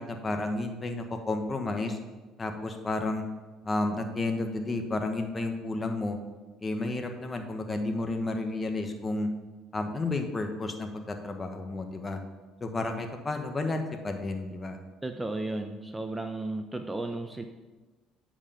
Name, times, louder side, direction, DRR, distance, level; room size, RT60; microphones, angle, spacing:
voice 1, 0.0-2.0 2.4-3.2 3.6-6.2 6.6-9.3 9.7-12.2 12.6-14.8, left 2 dB, 25° left, 5 dB, 1.3 m, -31 dB
voice 2, 15.0-17.4, right 2 dB, 15° right, 6 dB, 0.7 m, -34 dB
9.8 x 5.0 x 5.6 m, 1.2 s
supercardioid pair, 85°, 0 cm